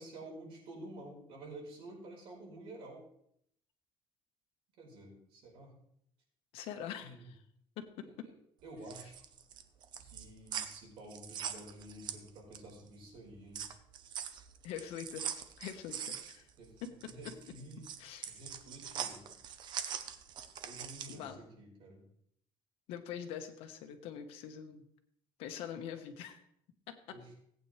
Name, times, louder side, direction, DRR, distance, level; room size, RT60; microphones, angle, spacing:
voice 1, 0.0-3.0 4.8-5.7 7.0-7.3 8.0-8.3 8.6-9.2 10.0-13.6 16.6-17.8 18.3-19.3 20.6-22.1 27.1-27.3, right 1 dB, 70° right, -2 dB, 4.8 m, -50 dB
voice 2, 6.5-7.4 7.8-7.9 14.6-16.4 16.8-16.9 18.0-18.4 21.1-21.4 22.9-24.8 25.4-26.4 26.9-27.0, left 9 dB, 90° left, 7 dB, 1.3 m, -44 dB
sound 1, 8.7-12.8 13.2-21.3, right 8 dB, 50° right, 0.9 m, -43 dB
17.5 x 8.9 x 3.3 m, 0.70 s
cardioid pair, 160°, 10 cm